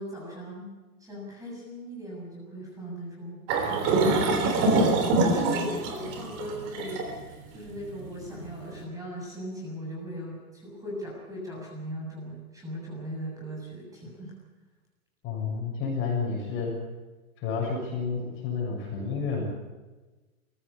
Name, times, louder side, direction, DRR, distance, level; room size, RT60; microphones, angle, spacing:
voice 1, 0.0-3.4 4.0-14.3, equal, 10° right, -3 dB, 7.2 m, -38 dB
sound 1, 3.5-8.7, right 2 dB, 35° right, 3.5 m, -25 dB
voice 2, 15.2-16.7 17.4-19.4, left 5 dB, 30° left, -1 dB, 6.8 m, -30 dB
22.5 x 15.5 x 8.6 m, 1.2 s
hypercardioid pair, 150°, 43 cm